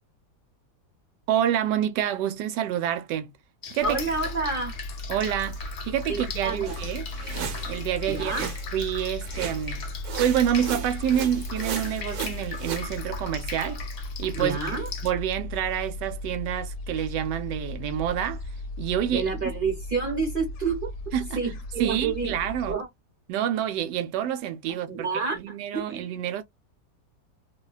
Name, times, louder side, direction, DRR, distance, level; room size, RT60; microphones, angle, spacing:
voice 1, 1.3-3.3 3.7-4.0 5.1-7.0 7.7-8.3 8.7-9.9 10.2-13.8 14.2-14.6 15.0-18.4 18.8-19.3 21.1-21.4 21.8-22.8 23.3-25.1 25.3-26.4, right 10 dB, 85° right, 1.2 m, -27 dB
Drip, 3.6-15.1, left 5 dB, 85° left, 0.5 m, -40 dB
Gull seagull, 3.8-22.7, left 2 dB, 65° left, 0.9 m, -36 dB
voice 2, 3.8-4.8 6.1-6.8 8.1-8.5 14.3-14.9 19.1-22.3 22.7-22.9 24.7-26.0, right 4 dB, 40° right, 0.8 m, -29 dB
sound 1, 6.6-8.8 9.2-9.8 10.0-12.9, right 8 dB, 70° right, 1.2 m, -36 dB
2.8 x 2.2 x 2.3 m
omnidirectional pair, 1.8 m